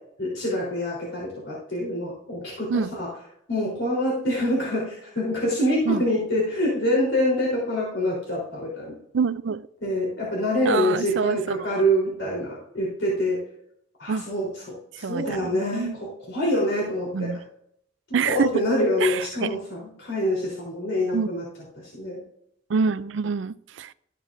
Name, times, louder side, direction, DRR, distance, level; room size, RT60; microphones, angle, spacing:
voice 1, 0.2-3.1 3.5-8.9 9.8-13.4 14.0-17.3 18.2-21.4 21.8-22.2, left 1 dB, 80° left, -5 dB, 3.6 m, -26 dB
voice 2, 9.1-9.7 10.7-11.8 14.1-14.2 15.0-16.0 17.1-17.4 18.1-18.5 19.0-19.5 21.1-21.3 22.7-23.9, right 5 dB, 75° right, 16 dB, 0.4 m, -26 dB
13.5 x 9.1 x 2.6 m, 0.72 s
head